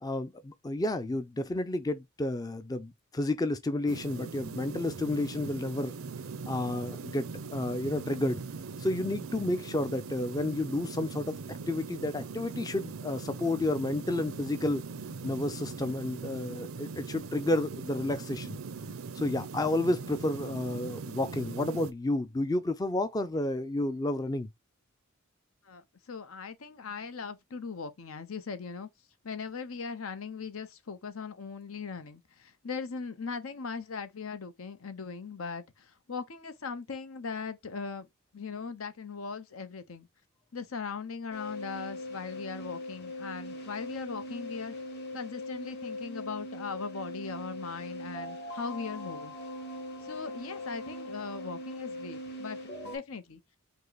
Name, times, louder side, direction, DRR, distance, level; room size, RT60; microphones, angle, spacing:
voice 1, 0.0-5.9 6.5-7.3 7.5-8.4 8.8-11.4 11.7-14.8 15.2-18.6 19.2-24.5, left 2 dB, 20° left, 0.4 m, -31 dB
sound 1, 3.9-21.9, right 4 dB, 75° right, 0.5 m, -40 dB
voice 2, 25.6-28.9 29.2-38.1 38.3-40.1 40.5-44.7 45.1-49.3 50.0-53.4, left 5 dB, 75° left, 0.7 m, -39 dB
sound 2, 41.3-53.0, left 1 dB, 50° left, 1.9 m, -41 dB
5.4 x 2.0 x 3.9 m
head